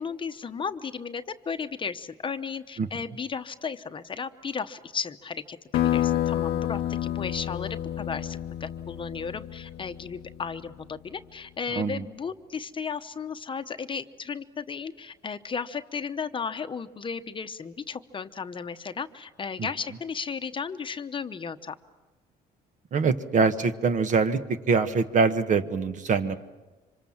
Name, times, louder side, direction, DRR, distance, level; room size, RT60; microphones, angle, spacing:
voice 1, 0.0-21.8, left 5 dB, 30° left, 9 dB, 0.9 m, -35 dB
sound 1, 5.7-10.9, left 12 dB, 75° left, 0.7 m, -29 dB
voice 2, 22.9-24.4 24.7-26.4, right 5 dB, 50° right, 10 dB, 1.4 m, -23 dB
26.0 x 25.5 x 7.3 m, 1.2 s
cardioid pair, 110°, 17 cm